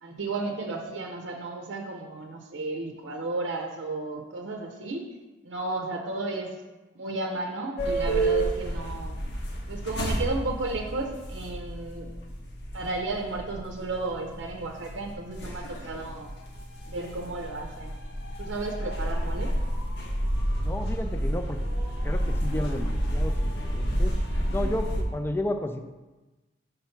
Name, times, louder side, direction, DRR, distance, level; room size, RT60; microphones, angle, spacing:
voice 1, 0.0-5.1 5.4-6.5 7.0-9.2 9.7-12.1 12.7-16.3 16.9-17.9 18.4-19.5, right 2 dB, 85° right, 1 dB, 0.6 m, -33 dB
sound 1, 7.8-25.0, right 1 dB, 65° left, 0.9 m, -30 dB
voice 2, 20.6-21.6 22.0-24.1 24.5-25.8, left 1 dB, 10° left, 6 dB, 0.4 m, -32 dB
5.7 x 3.4 x 5.6 m, 1.1 s
head